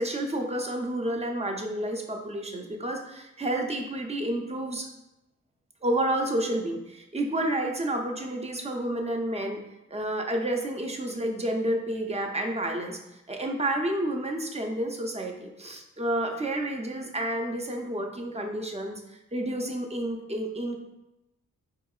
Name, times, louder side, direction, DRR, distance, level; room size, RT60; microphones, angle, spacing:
voice 1, 0.0-4.9 5.8-9.6 9.9-13.0 13.3-20.8, right 1 dB, 20° right, 2 dB, 0.4 m, -30 dB
4.4 x 2.8 x 2.3 m, 0.91 s
wide cardioid pair, 100°, 30 cm